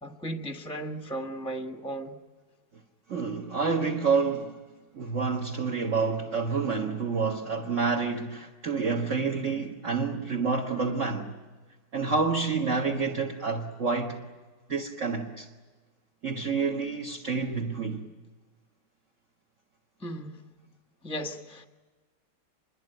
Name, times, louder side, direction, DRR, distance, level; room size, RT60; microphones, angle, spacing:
voice 1, 0.0-2.1 20.0-20.4 21.0-21.6, right 1 dB, 5° left, 1.3 m, -36 dB
voice 2, 3.1-4.5 4.9-11.3 11.9-14.2 14.7-15.5 16.2-18.0, right 4 dB, 40° right, 1.7 m, -28 dB
26.0 x 22.5 x 9.2 m
omnidirectional pair, 2.3 m